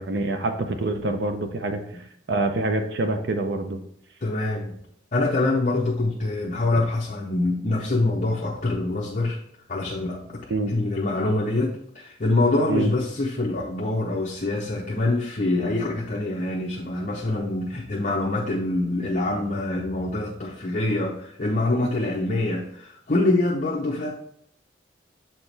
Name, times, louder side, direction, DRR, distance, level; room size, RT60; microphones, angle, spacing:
voice 1, 0.0-1.8 2.3-3.8 10.5-10.7 12.7-12.9, right 2 dB, 65° right, 6 dB, 0.6 m, -26 dB
voice 2, 4.2-4.7 5.1-9.4 9.7-24.1, left 2 dB, 40° left, -2 dB, 0.7 m, -25 dB
7.1 x 4.4 x 3.3 m, 0.71 s
head